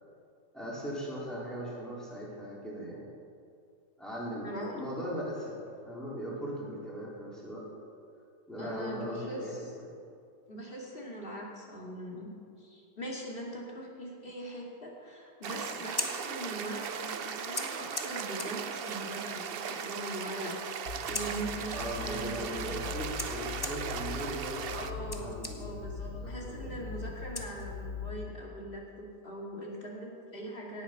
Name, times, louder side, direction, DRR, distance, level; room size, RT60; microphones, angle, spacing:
voice 1, 0.5-3.1 4.0-5.6 5.9-7.7 8.5-9.7 21.7-24.9 25.2-25.8 26.1-26.9, equal, ahead, -6 dB, 3.7 m, -39 dB
voice 2, 4.4-4.8 8.6-9.6 10.5-12.3 12.6-20.5 21.1-22.8 24.7-30.8, right 1 dB, 35° left, -2 dB, 2.4 m, -41 dB
sound 1, 15.4-24.9, right 7 dB, 65° right, 0.5 m, -38 dB
Scissors, 15.7-28.1, left 2 dB, 20° left, 0.8 m, -44 dB
sound 2, 20.9-28.2, left 5 dB, 80° left, 1.8 m, -41 dB
17.5 x 8.2 x 5.8 m, 2.4 s
omnidirectional pair, 1.8 m